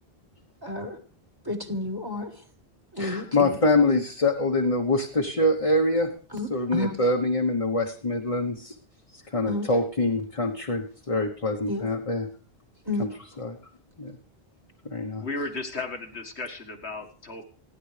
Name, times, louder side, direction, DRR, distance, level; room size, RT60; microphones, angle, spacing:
voice 1, 0.6-1.0 1.5-2.3 2.9-3.6 6.3-6.9 9.5-9.7 11.7-11.9 12.9-13.1, left 2 dB, 20° right, 4 dB, 1.8 m, -31 dB
voice 2, 3.0-6.1 6.5-8.7 9.3-12.3 13.0-13.1 13.4-13.6 14.0-14.2 14.8-15.2, left 2 dB, 35° left, 1 dB, 1.2 m, -25 dB
voice 3, 15.2-17.4, left 3 dB, 80° left, 4 dB, 2.0 m, -34 dB
28.5 x 10.0 x 3.3 m, 0.39 s
omnidirectional pair, 1.1 m